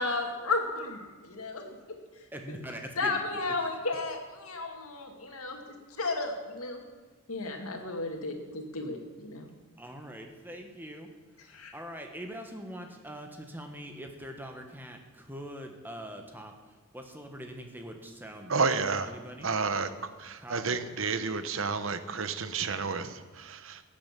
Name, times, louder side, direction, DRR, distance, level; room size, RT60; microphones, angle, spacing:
voice 1, 0.0-2.0 2.5-2.6 3.0-5.6 5.9-6.8 7.3-9.5 11.5-11.7, left 3 dB, 85° left, 3 dB, 2.2 m, -34 dB
voice 2, 2.3-3.4 7.5-7.6 9.8-11.1 11.4-18.6 19.0-19.5 20.4-20.8, equal, 10° right, 4 dB, 1.4 m, -43 dB
voice 3, 18.5-19.1 19.4-19.9 20.2-23.8, right 4 dB, 65° right, 11 dB, 0.9 m, -30 dB
15.5 x 8.8 x 7.4 m, 1.4 s
head